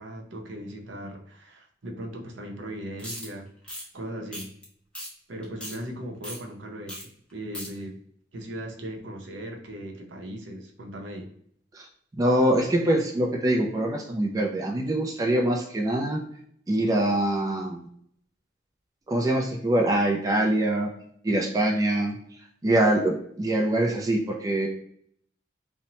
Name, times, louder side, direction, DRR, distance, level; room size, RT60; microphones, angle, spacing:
voice 1, 0.0-3.5 3.9-4.5 5.3-8.0 8.3-11.3, right 1 dB, 70° right, 2 dB, 0.6 m, -38 dB
sound 1, 3.0-3.3 3.6-3.8 4.3-4.6 4.9-5.1 5.4-5.8 6.2-6.4 6.9-7.0 7.3-7.7, equal, 5° left, 0.7 m, -37 dB
voice 2, 12.2-16.2 16.7-17.9 19.1-20.9 21.2-22.2 22.6-24.7, right 1 dB, 20° right, 0 dB, 0.3 m, -24 dB
2.9 x 2.1 x 2.7 m, 0.66 s
head